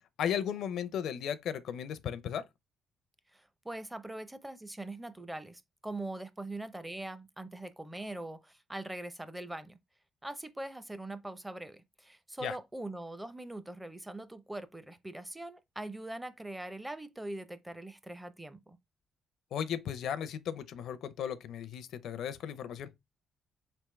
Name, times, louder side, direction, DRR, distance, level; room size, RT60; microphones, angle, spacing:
voice 1, 0.2-2.4 12.4-12.6 19.5-22.9, left 9 dB, 75° left, 0.5 m, -35 dB
voice 2, 3.3-9.8 10.2-18.8, right 1 dB, 10° right, 0.6 m, -42 dB
4.4 x 3.4 x 3.1 m
cardioid pair, 90°, 0 cm